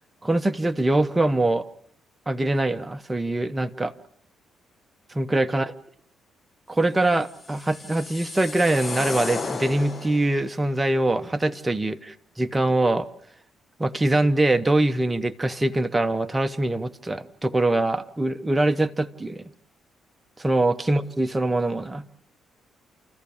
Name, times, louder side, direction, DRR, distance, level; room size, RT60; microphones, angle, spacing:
voice 1, 0.2-1.6 2.3-3.9 5.1-5.7 6.7-12.0 12.4-13.1 13.8-19.4 20.4-22.0, right 2 dB, 15° right, 8 dB, 1.1 m, -23 dB
sound 1, 7.2-10.4, left 4 dB, 35° left, 1.3 m, -33 dB
28.5 x 14.5 x 7.2 m, 0.70 s
cardioid pair, 90°, 0 cm